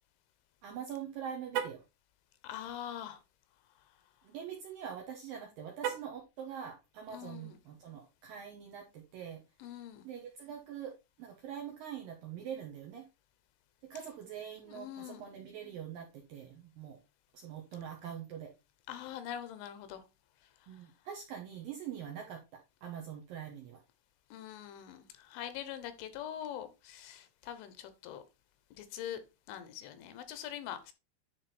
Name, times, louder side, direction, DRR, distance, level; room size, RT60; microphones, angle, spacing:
voice 1, 0.6-1.8 4.2-9.4 10.0-13.0 13.9-17.0 17.3-18.5 20.7-23.8, right 8 dB, 75° right, 1 dB, 2.1 m, -44 dB
Car, 1.5-1.9 5.8-6.3, right 10 dB, 90° right, 3.4 m, -36 dB
voice 2, 2.4-3.2 7.1-7.5 9.6-10.0 14.7-15.2 18.9-20.0 24.3-28.2 28.8-29.2 29.5-30.9, left 10 dB, 80° left, 11 dB, 3.3 m, -43 dB
10.5 x 3.6 x 4.2 m, 0.27 s
omnidirectional pair, 5.5 m